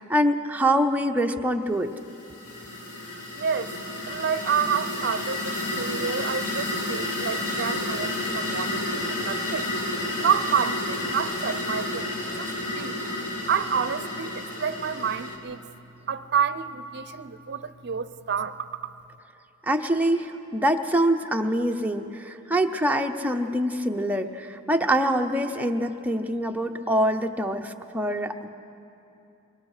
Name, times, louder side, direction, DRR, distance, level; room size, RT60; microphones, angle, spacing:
voice 1, 0.0-1.9 19.7-28.5, right 1 dB, 5° right, 4 dB, 0.7 m, -25 dB
sound 1, 2.0-15.4, left 1 dB, 90° left, 2.7 m, -31 dB
voice 2, 3.3-3.7 4.1-9.7 10.2-13.0 13.5-15.7 16.1-18.9, right 7 dB, 50° right, 13 dB, 0.6 m, -29 dB
24.5 x 23.0 x 4.9 m, 2.8 s
head